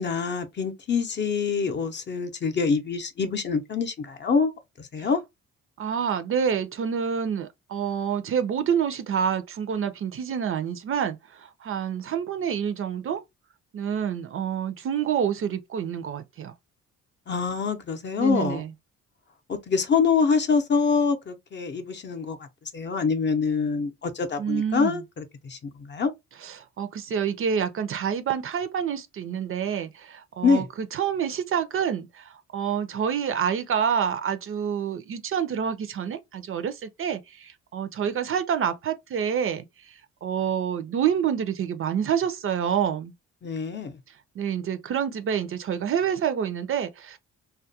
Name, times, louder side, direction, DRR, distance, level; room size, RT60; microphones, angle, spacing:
voice 1, 0.0-4.5 4.8-5.2 17.3-18.6 19.5-22.4 22.7-26.1 30.4-30.7 43.4-44.0, left 5 dB, 35° left, 0.6 m, -25 dB
voice 2, 5.8-11.2 11.6-13.2 13.7-16.5 18.2-18.7 24.4-25.0 26.4-30.6 30.9-32.2 32.5-39.7 40.2-43.1 44.4-47.2, right 8 dB, 45° right, 0.4 m, -27 dB
2.3 x 2.1 x 2.7 m
cardioid pair, 90°, 30 cm